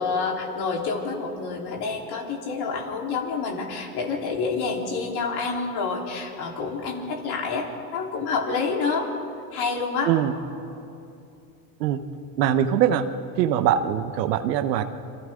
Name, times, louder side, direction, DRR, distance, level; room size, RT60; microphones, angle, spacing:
voice 1, 0.0-7.7 7.9-9.1 9.5-10.1, left 4 dB, 50° left, -1 dB, 4.0 m, -28 dB
voice 2, 12.4-13.0 13.4-14.8, right 10 dB, 85° right, 9 dB, 1.3 m, -22 dB
28.5 x 24.0 x 3.8 m, 2.7 s
supercardioid pair, 100°, 48 cm